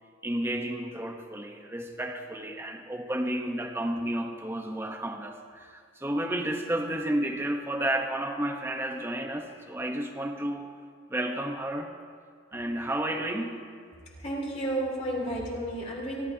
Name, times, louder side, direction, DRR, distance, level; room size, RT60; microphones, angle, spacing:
voice 1, 0.2-10.7 11.1-11.9 12.5-13.6, right 1 dB, 15° right, 4 dB, 0.9 m, -31 dB
voice 2, 14.2-16.2, right 1 dB, 35° left, -4 dB, 3.0 m, -32 dB
27.5 x 12.0 x 2.8 m, 2.1 s
head